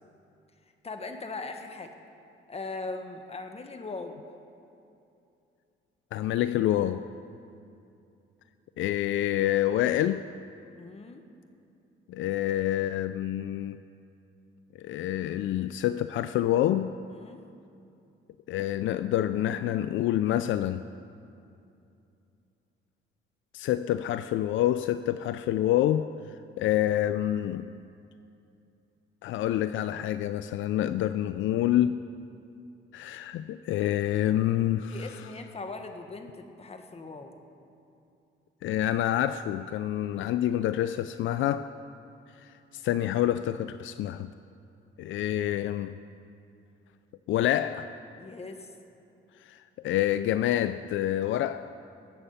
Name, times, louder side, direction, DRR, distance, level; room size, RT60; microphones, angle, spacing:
voice 1, 0.8-1.9 2.5-4.2 10.8-11.2 17.1-17.4 34.9-37.4 48.2-48.7, left 3 dB, 30° left, 5 dB, 1.5 m, -39 dB
voice 2, 6.1-7.1 8.8-10.3 12.1-13.8 14.7-17.0 18.5-20.8 23.5-27.7 29.2-32.0 32.9-35.2 38.6-41.7 42.4-44.3 45.0-46.0 47.3-47.9 49.4-51.7, left 12 dB, 75° left, 12 dB, 0.4 m, -27 dB
20.5 x 8.4 x 5.7 m, 2.7 s
cardioid pair, 90°, 20 cm